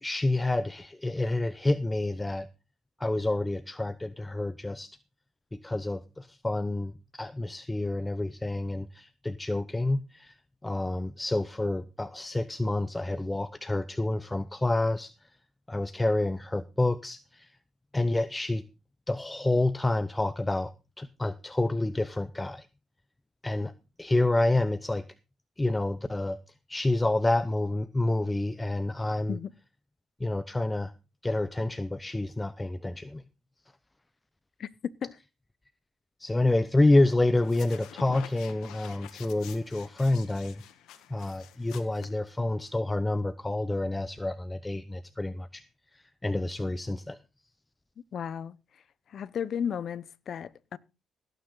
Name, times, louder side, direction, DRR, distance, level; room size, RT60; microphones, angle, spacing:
voice 1, 0.0-2.5 3.0-5.0 5.5-10.4 10.6-15.3 15.7-17.6 17.9-18.6 19.1-22.7 23.4-23.7 24.0-25.0 25.6-26.4 26.7-29.4 30.2-30.9 31.2-33.2 36.2-40.6 41.1-45.6 45.9-47.2, left 2 dB, 15° left, 0.8 m, -28 dB
voice 2, 34.6-35.2 48.1-48.8 49.1-50.8, left 8 dB, 60° left, 0.8 m, -34 dB
sound 1, 37.3-42.7, left 11 dB, 90° left, 1.7 m, -48 dB
17.0 x 9.2 x 3.9 m
cardioid pair, 90°, 0 cm